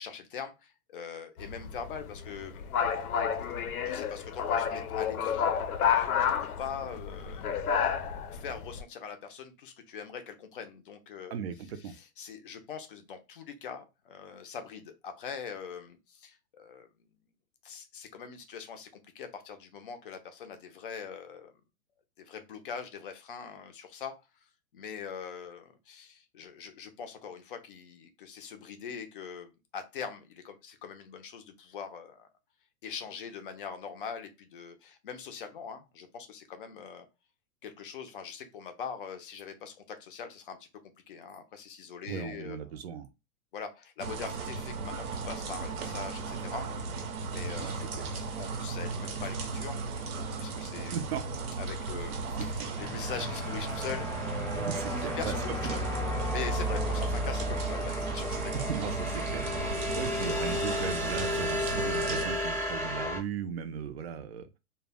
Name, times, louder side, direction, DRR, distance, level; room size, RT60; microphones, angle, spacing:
voice 1, 0.0-3.0 3.8-5.5 5.8-7.6 8.3-11.3 11.8-16.9 17.6-18.9 19.1-21.5 22.2-24.1 24.7-32.3 32.8-37.1 37.6-40.6 41.1-42.8 43.5-46.7 47.3-49.8 50.2-50.9 51.6-55.8 56.3-58.7, left 6 dB, 40° left, 0.4 m, -42 dB
sound 1, 1.4-8.8, left 7 dB, 90° left, 0.6 m, -30 dB
voice 2, 11.3-12.0 42.1-43.1 47.6-48.1 50.9-51.2 52.1-52.2 54.6-55.3 55.6-55.8 58.5-59.5 59.9-64.6, right 7 dB, 45° right, 0.4 m, -37 dB
sound 2, 44.0-62.3, right 4 dB, 85° right, 0.8 m, -36 dB
sound 3, 52.8-63.2, left 1 dB, 5° left, 0.7 m, -33 dB
2.1 x 2.1 x 3.3 m
hypercardioid pair, 155°, 44 cm